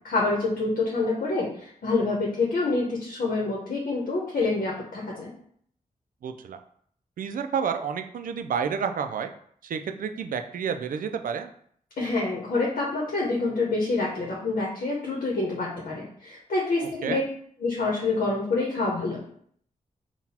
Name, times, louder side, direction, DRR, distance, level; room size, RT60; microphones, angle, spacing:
voice 1, 0.0-5.3 12.0-17.2 17.6-19.2, left 3 dB, 80° left, -3 dB, 0.9 m, -27 dB
voice 2, 6.2-6.6 7.2-9.3 9.6-11.5 17.0-17.2, right 7 dB, 75° right, 7 dB, 0.4 m, -30 dB
3.9 x 2.3 x 4.2 m, 0.62 s
wide cardioid pair, 95°, 14 cm